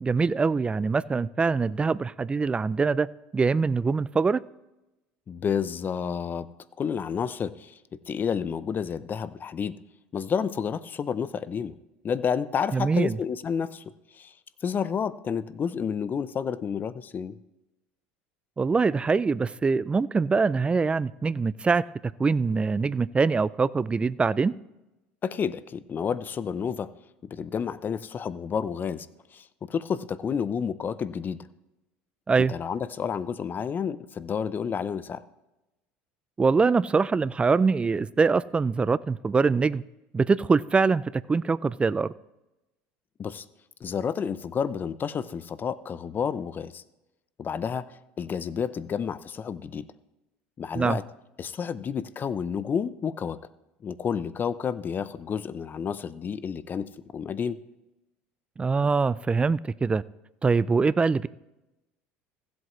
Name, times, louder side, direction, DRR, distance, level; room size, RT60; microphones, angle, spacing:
voice 1, 0.0-3.1 3.3-4.4 12.7-13.2 18.6-21.8 22.2-24.5 32.3-32.5 36.4-39.8 40.1-42.1 50.7-51.0 58.6-60.0 60.4-61.3, right 4 dB, 20° right, 19 dB, 0.3 m, -23 dB
voice 2, 5.3-6.5 6.8-7.8 8.1-9.8 10.1-11.7 12.0-13.8 14.1-14.3 14.6-17.4 25.2-26.9 27.2-29.1 29.3-31.5 32.4-35.2 43.2-43.4 43.8-46.8 47.4-49.8 50.6-51.0 51.4-53.4 53.8-57.6, left 7 dB, 35° left, 16 dB, 0.6 m, -30 dB
16.0 x 7.8 x 3.2 m, 0.97 s
hypercardioid pair, 85°, 6 cm